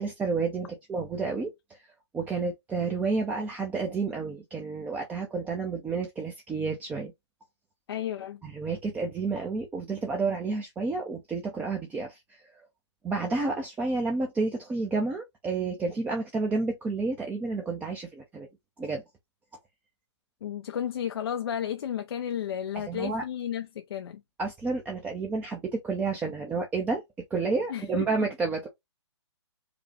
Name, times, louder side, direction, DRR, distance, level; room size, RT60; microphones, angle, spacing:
voice 1, 0.0-1.5 2.1-7.1 8.4-12.6 13.0-18.5 18.8-19.0 22.8-23.2 24.4-27.0 27.3-28.7, right 4 dB, 10° right, 0.7 m, -30 dB
voice 2, 7.9-8.4 20.4-24.2 27.7-28.3, left 9 dB, 55° left, 0.6 m, -33 dB
4.8 x 2.4 x 3.1 m
figure-of-eight pair, 130°, 15 cm